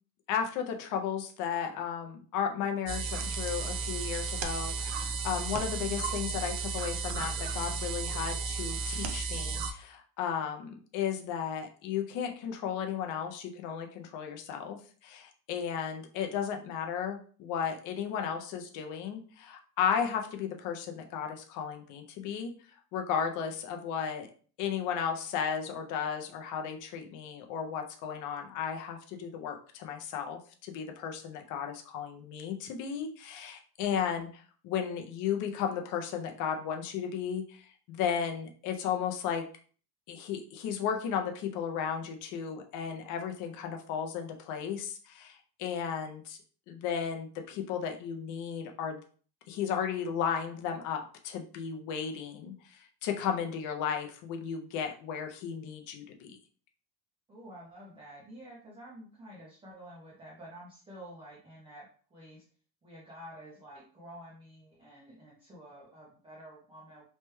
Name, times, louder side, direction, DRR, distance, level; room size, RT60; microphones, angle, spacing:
voice 1, 0.3-14.8 15.0-22.5 22.9-24.3 24.6-39.4 40.1-46.4 46.7-49.0 49.5-56.4, left 7 dB, 45° left, 4 dB, 0.5 m, -34 dB
sound 1, 2.9-9.7, right 4 dB, 70° right, 0.6 m, -34 dB
voice 2, 57.3-61.9 62.1-62.4 62.8-67.0, right 1 dB, 10° right, -6 dB, 0.4 m, -49 dB
3.2 x 2.2 x 3.0 m, 0.42 s
cardioid pair, 180°, 45 cm